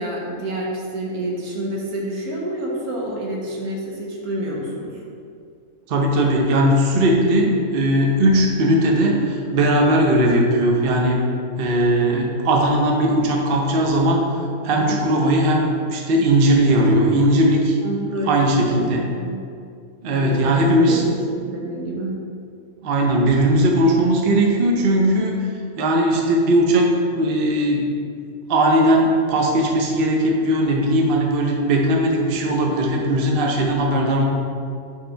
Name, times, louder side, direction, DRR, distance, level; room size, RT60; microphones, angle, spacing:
voice 1, 0.0-5.0 14.8-15.1 17.8-18.9 19.2-19.4 20.1-20.6 20.9-22.2, right 1 dB, 75° right, -3 dB, 1.5 m, -28 dB
voice 2, 5.9-11.2 11.6-14.2 14.6-17.8 18.3-19.1 20.0-21.0 22.8-25.4 25.8-27.9 28.5-34.3, right 1 dB, 50° right, 0 dB, 0.8 m, -18 dB
4.8 x 4.4 x 5.6 m, 2.4 s
omnidirectional pair, 1.6 m